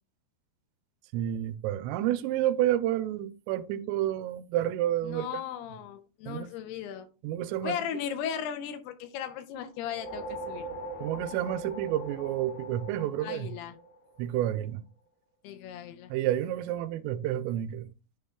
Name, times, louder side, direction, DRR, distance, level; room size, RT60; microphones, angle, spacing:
voice 1, 1.1-5.3 6.3-6.5 7.2-7.7 11.0-13.5 14.2-14.8 16.1-17.9, right 12 dB, 85° right, 2.7 m, -30 dB
voice 2, 5.0-7.1 7.6-10.7 13.2-13.8 15.4-16.1, left 9 dB, 80° left, 2.5 m, -36 dB
sound 1, 9.7-14.3, right 2 dB, 65° left, 3.6 m, -41 dB
9.8 x 5.2 x 2.2 m
omnidirectional pair, 4.9 m